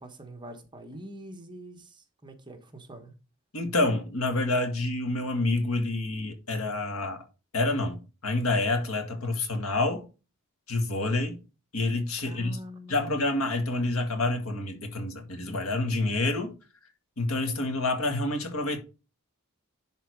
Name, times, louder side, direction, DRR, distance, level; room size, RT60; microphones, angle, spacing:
voice 1, 0.0-3.1 12.2-13.3, equal, 20° right, 1.2 m, -44 dB
voice 2, 3.5-7.2 7.5-10.1 10.7-11.4 11.7-12.6 12.9-16.6 17.2-18.8, left 2 dB, 70° left, 1.8 m, -28 dB
11.0 x 3.9 x 4.7 m
head